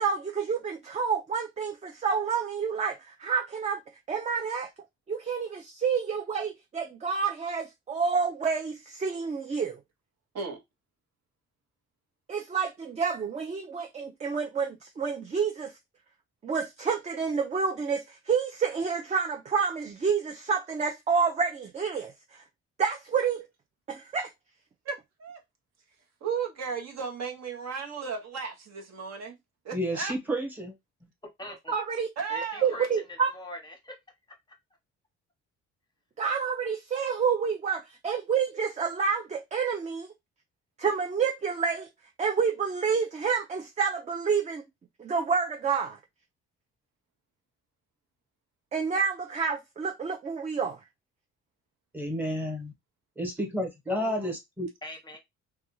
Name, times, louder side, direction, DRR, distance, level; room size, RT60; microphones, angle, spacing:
voice 1, 0.0-3.8 4.1-4.7 5.1-9.8 12.3-15.7 16.4-22.4 22.8-23.5 23.9-24.3 31.7-32.1 32.6-33.3 36.2-40.1 40.8-41.9 42.2-44.6 45.0-46.0 48.7-50.8, right 6 dB, 25° right, 0.4 m, -29 dB
voice 2, 24.8-25.4 26.2-29.3 29.6-30.1 32.2-32.8 53.9-54.3, right 6 dB, 60° right, 0.9 m, -35 dB
voice 3, 29.7-30.8 51.9-52.7 53.2-54.7, equal, 5° right, 1.1 m, -31 dB
voice 4, 31.4-31.7 32.3-33.9 54.8-55.2, left 1 dB, 15° left, 0.9 m, -42 dB
2.4 x 2.2 x 3.0 m
cardioid pair, 90°, 30 cm